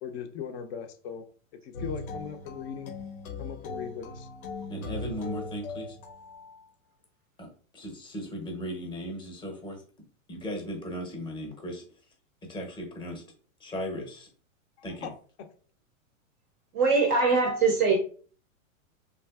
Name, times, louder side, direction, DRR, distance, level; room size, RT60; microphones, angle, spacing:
voice 1, 0.0-1.2 1.6-3.0 3.4-4.3 15.0-15.1, left 7 dB, 50° left, 6 dB, 0.6 m, -38 dB
sound 1, 1.7-6.6, left 3 dB, 75° left, 0.8 m, -39 dB
voice 2, 4.7-6.0 7.4-9.8 10.3-12.1 12.4-13.2 13.6-14.3 14.8-15.1, equal, 10° left, 2 dB, 0.7 m, -37 dB
voice 3, 16.7-18.0, right 4 dB, 25° right, 2 dB, 0.4 m, -22 dB
3.3 x 2.5 x 2.3 m, 0.42 s
hypercardioid pair, 130°, 42 cm